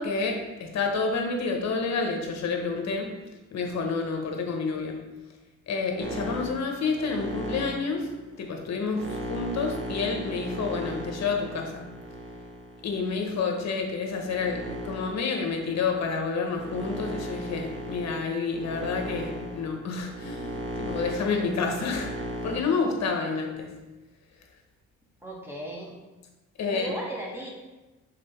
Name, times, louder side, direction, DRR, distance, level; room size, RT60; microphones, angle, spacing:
voice 1, 0.0-3.1 3.5-5.0 5.7-8.1 8.4-11.9 12.8-22.1 22.4-23.7 26.6-26.9, left 4 dB, 60° left, 2 dB, 1.3 m, -29 dB
sound 1, 6.0-13.4 14.0-22.6, equal, 40° right, 1.5 m, -37 dB
voice 2, 25.2-25.9 26.6-27.5, right 1 dB, 10° right, -4 dB, 1.7 m, -36 dB
6.1 x 3.7 x 4.5 m, 1.1 s
cardioid pair, 90°, 30 cm